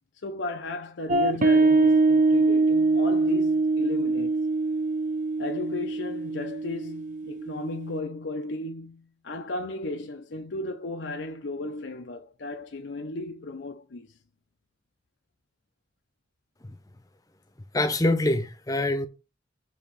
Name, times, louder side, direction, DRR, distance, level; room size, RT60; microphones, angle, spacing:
voice 1, 0.2-4.4 5.4-14.1, left 2 dB, 80° left, 0.7 m, -35 dB
sound 1, 1.1-8.0, right 3 dB, 45° right, 0.7 m, -23 dB
voice 2, 17.7-19.1, left 2 dB, 20° left, 0.8 m, -24 dB
7.1 x 3.0 x 5.8 m
head